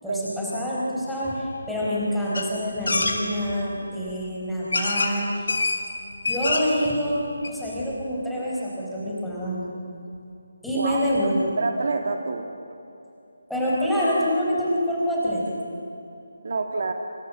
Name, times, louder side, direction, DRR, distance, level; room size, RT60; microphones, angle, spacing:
voice 1, 0.0-5.5 6.3-9.7 10.6-11.4 13.5-15.5, equal, ahead, -8 dB, 4.6 m, -26 dB
sound 1, 2.3-2.5 2.9-3.2 4.1-4.2 4.7-5.1 5.5-5.8 6.1-6.8 7.2-7.3 7.4-7.5, left 3 dB, 70° left, 4.0 m, -24 dB
voice 2, 11.6-12.5 16.4-16.9, right 3 dB, 55° right, 4 dB, 2.1 m, -27 dB
25.0 x 25.0 x 7.6 m, 2.8 s
figure-of-eight pair, 170°, 0 cm